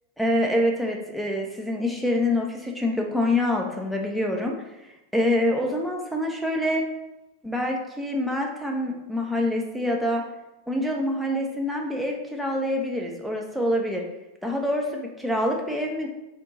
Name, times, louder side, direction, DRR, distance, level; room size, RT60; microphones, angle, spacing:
voice 1, 0.2-4.6 5.1-6.8 7.4-10.2 10.7-14.0 14.4-16.1, left 1 dB, ahead, 0 dB, 0.7 m, -26 dB
3.8 x 2.7 x 3.7 m, 0.96 s
figure-of-eight pair, 90°, 0 cm